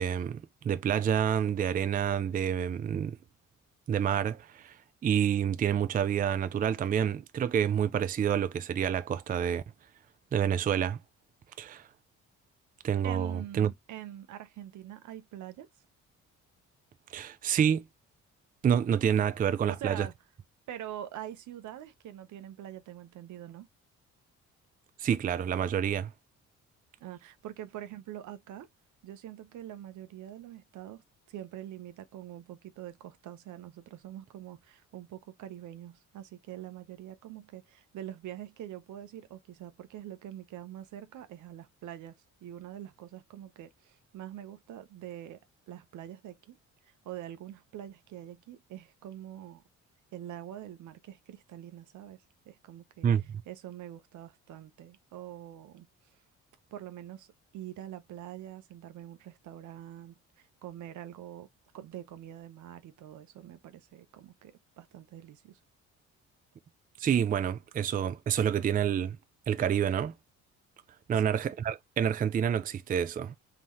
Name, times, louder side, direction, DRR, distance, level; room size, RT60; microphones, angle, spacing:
voice 1, 0.0-3.2 3.9-4.8 5.0-9.6 10.3-11.0 11.6-11.9 12.8-13.7 17.1-17.8 18.6-20.1 25.0-26.1 53.0-53.2 67.0-69.2 69.5-70.1 71.1-73.3, right 8 dB, 30° right, 0.4 m, -28 dB
voice 2, 13.0-15.7 19.7-20.1 20.7-23.7 27.0-28.7 29.0-45.4 45.7-46.6 46.8-49.6 50.1-53.1 53.5-56.2 56.7-65.6 71.1-71.3, right 11 dB, 75° right, 0.7 m, -45 dB
3.7 x 2.8 x 3.0 m
cardioid pair, 90°, 30 cm